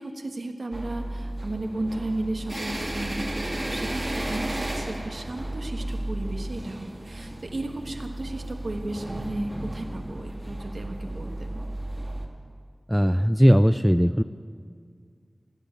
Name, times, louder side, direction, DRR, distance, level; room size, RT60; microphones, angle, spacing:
voice 1, 0.0-11.6, right 2 dB, 75° right, 4 dB, 1.4 m, -34 dB
sound 1, 0.7-12.3, right 1 dB, 30° right, 1.9 m, -33 dB
voice 2, 12.9-14.2, equal, ahead, 10 dB, 0.3 m, -18 dB
17.0 x 8.3 x 9.1 m, 2.1 s
wide cardioid pair, 70°, 0 cm